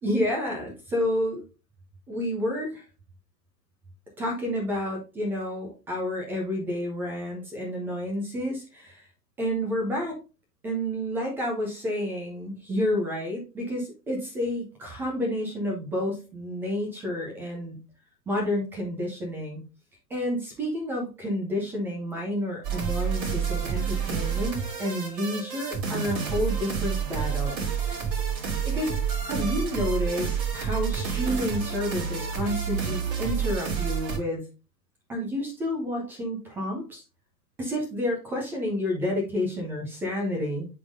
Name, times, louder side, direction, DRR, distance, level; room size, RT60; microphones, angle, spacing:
voice 1, 0.0-1.4 2.1-2.8 4.2-9.0 9.4-10.2 10.6-17.8 18.3-19.6 20.1-27.6 28.7-29.0 29.2-34.4 35.1-37.0 37.6-40.7, left 1 dB, 5° right, 0 dB, 0.4 m, -30 dB
sound 1, 22.6-34.2, right 7 dB, 35° right, 2.9 m, -29 dB
10.5 x 3.6 x 2.5 m, 0.31 s
hypercardioid pair, 115°, 49 cm